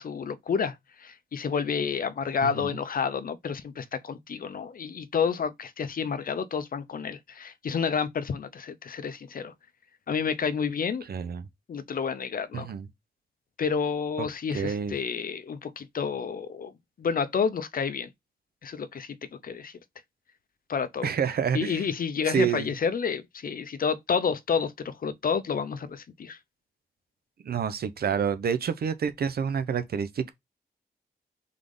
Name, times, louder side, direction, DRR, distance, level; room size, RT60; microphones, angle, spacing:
voice 1, 0.0-9.5 10.1-11.0 11.7-12.7 13.6-16.7 17.0-18.1 18.6-19.2 19.4-19.7 20.7-21.1 21.5-26.4, left 6 dB, 60° left, 0.6 m, -30 dB
voice 2, 11.1-11.4 12.5-12.9 14.2-14.3 14.5-14.9 21.0-21.8 22.3-22.7 27.4-30.3, right 7 dB, 70° right, 0.6 m, -28 dB
3.7 x 3.5 x 3.7 m
cardioid pair, 75°, 17 cm